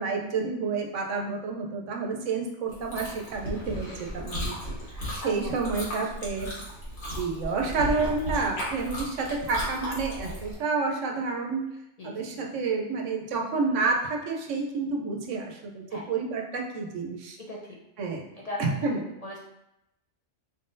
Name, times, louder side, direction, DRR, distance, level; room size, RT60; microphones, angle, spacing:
voice 1, 0.0-4.6 5.1-6.5 7.1-11.6 12.0-17.4 18.0-18.2 18.6-19.0, right 4 dB, 85° right, 1 dB, 1.1 m, -29 dB
Chewing mastication, 2.7-10.5, equal, 75° left, 1.6 m, -35 dB
voice 2, 4.5-5.8 12.0-12.4 15.9-16.1 17.5-17.8 18.4-18.8 19.2-19.4, left 1 dB, 45° left, -3 dB, 0.6 m, -40 dB
4.3 x 3.8 x 2.6 m, 0.88 s
omnidirectional pair, 1.2 m